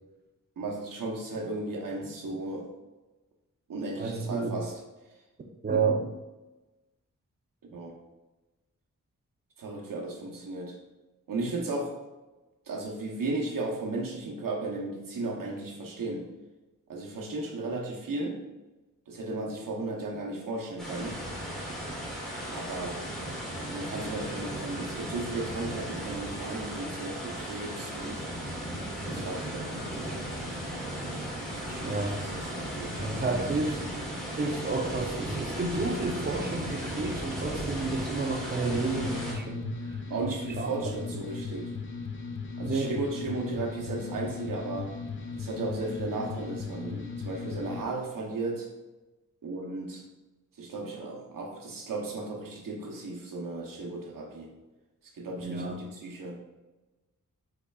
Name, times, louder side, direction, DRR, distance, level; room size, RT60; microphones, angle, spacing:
voice 1, 0.6-2.7 3.7-4.7 7.7-7.9 9.6-10.8 11.3-11.9 12.7-16.3 16.9-18.4 19.1-21.2 22.5-23.0 23.7-28.2 28.9-29.7 31.6-33.0 40.1-41.7 42.6-45.0 45.4-48.7 49.4-50.0 50.6-54.5 55.2-56.3, right 2 dB, 75° right, -1 dB, 0.9 m, -35 dB
voice 2, 4.0-4.5 5.6-6.1 31.8-32.2 33.0-33.8 34.4-39.9 40.6-40.7 42.6-42.9 55.4-55.8, right 3 dB, 30° right, 3 dB, 0.6 m, -30 dB
sound 1, 20.8-39.3, right 1 dB, ahead, 1.3 m, -36 dB
sound 2, 38.7-47.8, left 5 dB, 40° left, 0.5 m, -37 dB
5.4 x 3.9 x 2.3 m, 1.1 s
wide cardioid pair, 135°, 33 cm